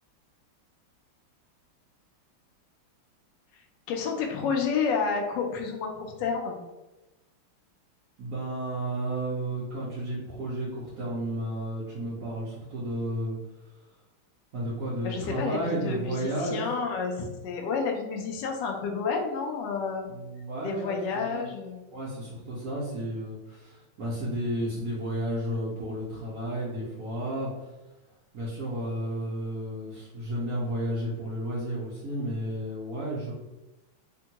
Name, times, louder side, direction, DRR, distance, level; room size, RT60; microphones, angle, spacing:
voice 1, 3.5-6.6 15.0-20.1 20.6-21.8, left 5 dB, 80° left, 2 dB, 1.0 m, -30 dB
voice 2, 8.2-13.4 14.5-16.6 20.1-21.4 21.9-27.7 28.3-33.3, right 1 dB, 75° right, -8 dB, 0.8 m, -32 dB
3.5 x 2.2 x 2.8 m, 1.0 s
omnidirectional pair, 2.4 m